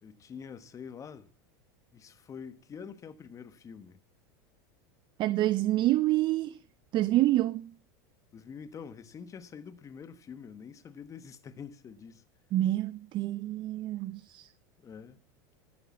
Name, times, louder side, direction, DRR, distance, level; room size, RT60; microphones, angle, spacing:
voice 1, 0.0-1.3 1.9-4.0 8.3-12.2 14.8-15.2, left 6 dB, 25° left, 1.2 m, -46 dB
voice 2, 5.2-6.6 6.9-7.7 12.5-14.5, right 15 dB, 40° right, 0.5 m, -27 dB
13.0 x 6.8 x 7.2 m
supercardioid pair, 120°, 12 cm